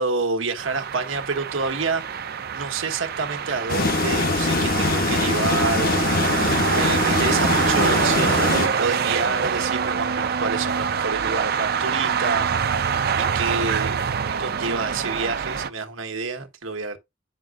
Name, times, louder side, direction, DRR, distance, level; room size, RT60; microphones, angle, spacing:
voice 1, 0.0-5.9 6.4-14.0 14.4-17.0, right 4 dB, 85° right, 1.3 m, -28 dB
sound 1, 0.6-15.7, right 6 dB, 50° right, 0.5 m, -25 dB
sound 2, 3.7-8.7, left 3 dB, 50° left, 0.8 m, -23 dB
9.4 x 6.1 x 2.4 m
head